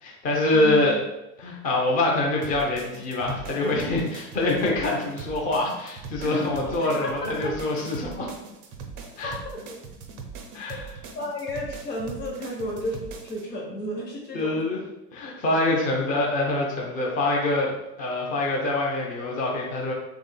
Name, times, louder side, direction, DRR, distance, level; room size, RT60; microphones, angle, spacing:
voice 1, 0.0-0.9 1.4-8.3 9.2-9.3 10.5-10.8 14.3-14.8 15.1-19.9, left 2 dB, 20° left, -1 dB, 0.5 m, -25 dB
voice 2, 0.5-0.9 6.2-7.5 9.2-9.6 10.7-10.8 11.1-14.7, equal, 80° left, -2 dB, 1.1 m, -33 dB
sound 1, 2.4-13.4, right 5 dB, 35° right, 0.4 m, -41 dB
3.5 x 3.3 x 2.2 m, 0.90 s
figure-of-eight pair, 80°, 49 cm